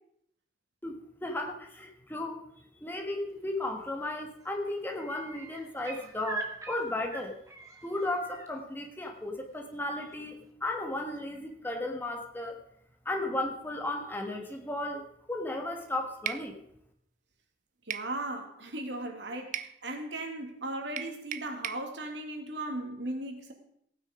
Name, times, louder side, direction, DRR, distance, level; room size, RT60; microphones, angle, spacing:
voice 1, 1.2-2.4 2.8-7.4 7.8-12.6 13.0-16.6, left 1 dB, 10° left, 1.5 m, -35 dB
sound 1, 3.8-4.1 4.4-8.5 10.1-10.2, right 2 dB, 20° right, 1.7 m, -43 dB
sound 2, 16.3-16.5 17.9-18.1 19.5-19.8 21.0-21.9, right 10 dB, 45° right, 0.5 m, -36 dB
voice 2, 17.9-23.5, right 1 dB, 85° right, 2.3 m, -37 dB
16.5 x 9.2 x 5.0 m
head